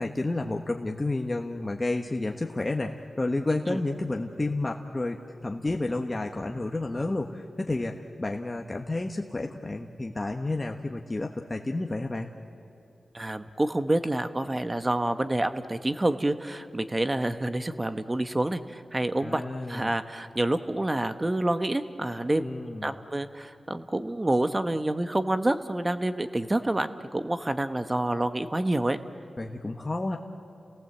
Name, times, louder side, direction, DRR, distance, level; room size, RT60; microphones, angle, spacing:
voice 1, 0.0-12.3 19.2-19.9 22.4-22.9 29.4-30.2, left 2 dB, 30° left, 2 dB, 1.2 m, -31 dB
voice 2, 13.1-19.4 19.7-22.5 22.8-29.0, right 1 dB, 25° right, 10 dB, 1.1 m, -28 dB
29.0 x 18.0 x 8.0 m, 2.8 s
cardioid pair, 55°, 0 cm